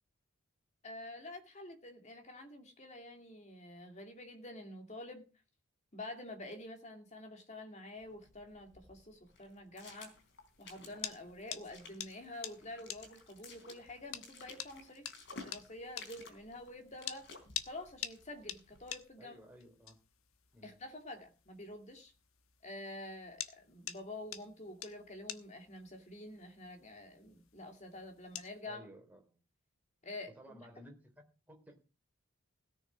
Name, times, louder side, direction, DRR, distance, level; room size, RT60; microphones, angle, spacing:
voice 1, 0.8-5.3 5.9-10.2 10.6-17.3 17.7-19.3 20.6-22.1 22.6-28.9 30.0-30.6, left 1 dB, 30° left, 5 dB, 2.4 m, -48 dB
sound 1, 8.0-19.0, left 3 dB, 55° left, 3.9 m, -55 dB
sound 2, 9.8-28.6, left 10 dB, 70° left, 1.1 m, -49 dB
voice 2, 19.2-20.0 20.5-20.7 28.7-29.4 30.3-31.8, equal, 5° right, 2 dB, 3.5 m, -56 dB
17.0 x 6.5 x 6.2 m, 0.33 s
head